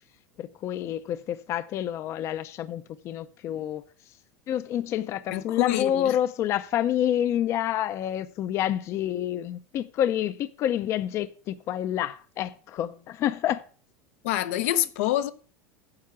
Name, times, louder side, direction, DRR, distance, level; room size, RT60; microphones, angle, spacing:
voice 1, 0.4-3.8 4.5-13.6, left 11 dB, 40° left, 0.5 m, -28 dB
voice 2, 5.3-6.2 14.2-15.3, left 13 dB, 75° left, 0.7 m, -26 dB
9.6 x 5.8 x 5.7 m
supercardioid pair, 145°, 8 cm